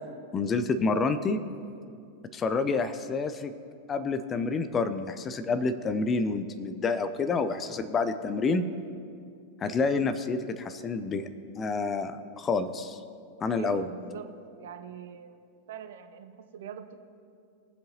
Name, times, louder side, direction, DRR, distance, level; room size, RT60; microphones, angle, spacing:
voice 1, 0.3-1.4 2.3-3.5 3.9-8.6 9.6-11.3 11.6-13.0 13.4-13.9, left 4 dB, 25° left, 10 dB, 0.6 m, -28 dB
voice 2, 13.6-15.4 15.7-17.1, right 8 dB, 60° right, 8 dB, 0.7 m, -42 dB
21.5 x 7.6 x 2.9 m, 2.5 s
figure-of-eight pair, 90°, 0 cm